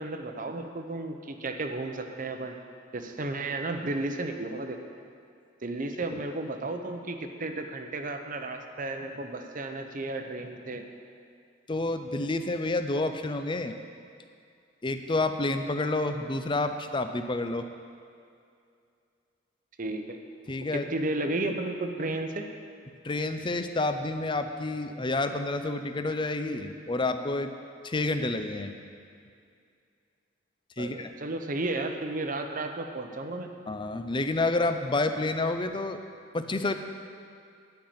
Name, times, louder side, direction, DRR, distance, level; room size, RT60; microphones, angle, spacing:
voice 1, 0.0-2.6 2.9-4.8 5.6-10.8 19.8-20.2 20.7-22.5 30.8-33.5, right 2 dB, 45° right, 5 dB, 0.8 m, -33 dB
voice 2, 11.7-13.7 14.8-17.7 20.5-20.9 23.0-27.5 27.8-28.7 30.8-31.1 33.7-36.0 36.3-36.7, left 2 dB, 25° left, 8 dB, 0.5 m, -29 dB
10.5 x 5.7 x 8.7 m, 2.4 s
head